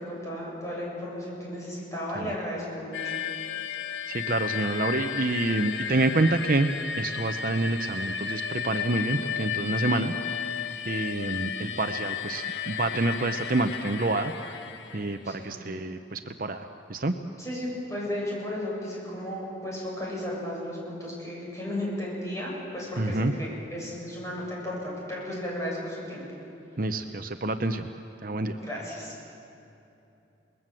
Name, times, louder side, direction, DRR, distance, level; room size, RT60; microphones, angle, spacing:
voice 1, 0.0-3.2 15.2-15.6 17.4-26.2 28.6-29.1, left 1 dB, 15° left, -4 dB, 7.6 m, -34 dB
sound 1, 2.9-15.3, left 8 dB, 75° left, 1.1 m, -33 dB
voice 2, 4.1-6.7 7.0-10.4 10.9-14.6 14.9-17.1 23.0-23.3 26.8-27.9 28.2-28.6, right 2 dB, 50° right, 7 dB, 0.8 m, -28 dB
28.5 x 20.5 x 7.7 m, 2.8 s
head